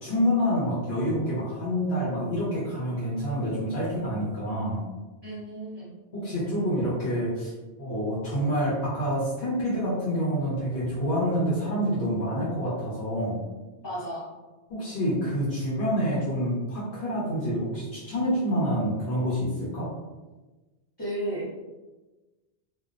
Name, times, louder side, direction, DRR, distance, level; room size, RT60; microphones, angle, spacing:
voice 1, 0.0-4.8 6.1-7.5 7.8-13.4 14.7-19.9, equal, 80° left, -9 dB, 1.1 m, -27 dB
voice 2, 5.2-5.9 13.8-14.3 21.0-21.5, right 1 dB, 25° left, -12 dB, 0.7 m, -33 dB
2.5 x 2.0 x 2.4 m, 1.2 s
omnidirectional pair, 1.1 m